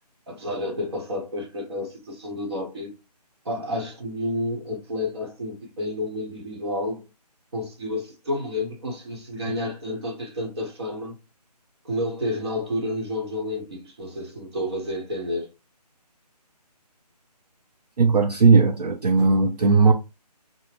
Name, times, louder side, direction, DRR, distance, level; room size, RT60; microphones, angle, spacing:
voice 1, 0.3-2.9 3.4-7.1 7.5-11.1 11.8-15.5, left 1 dB, 40° right, 0.9 m, -30 dB
voice 2, 18.0-19.9, right 4 dB, 70° right, 0.6 m, -17 dB
2.7 x 2.0 x 3.3 m
figure-of-eight pair, 160°, 21 cm